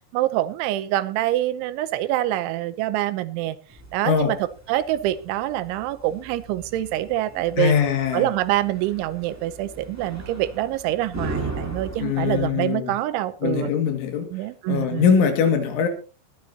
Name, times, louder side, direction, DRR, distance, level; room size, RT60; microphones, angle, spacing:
voice 1, 0.1-3.6 3.9-7.8 8.1-13.7 14.3-15.1, right 14 dB, 80° right, 15 dB, 3.1 m, -25 dB
sound 1, 3.7-12.5, right 2 dB, 5° right, 1.8 m, -38 dB
voice 2, 7.6-8.3 12.0-12.9 13.4-14.3 14.7-15.9, left 7 dB, 80° left, 6 dB, 4.6 m, -21 dB
20.5 x 13.5 x 2.8 m, 0.35 s
omnidirectional pair, 5.5 m